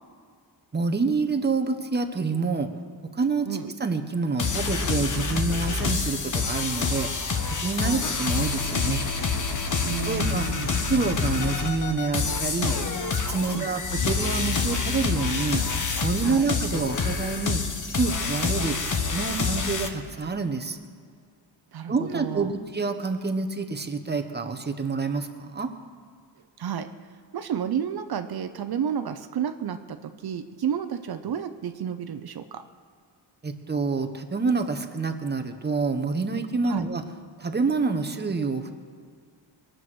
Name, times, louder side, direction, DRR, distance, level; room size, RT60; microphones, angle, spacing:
voice 1, 0.7-2.7 3.1-3.5 3.8-7.1 7.6-9.1 10.0-10.4 10.9-12.7 13.3-15.6 16.0-17.6 18.0-18.8 19.1-20.8 21.9-25.3 25.5-25.7 33.4-37.0 37.4-38.7, right 4 dB, 20° right, 5 dB, 1.1 m, -27 dB
sound 1, 4.4-19.9, left 5 dB, 40° left, 1.3 m, -27 dB
voice 2, 9.8-10.7 13.5-13.7 16.2-16.5 21.7-22.5 26.6-26.9 27.3-32.6 36.7-36.8, right 8 dB, 55° right, 9 dB, 0.8 m, -31 dB
23.5 x 7.8 x 6.2 m, 2.1 s
wide cardioid pair, 150°, 46 cm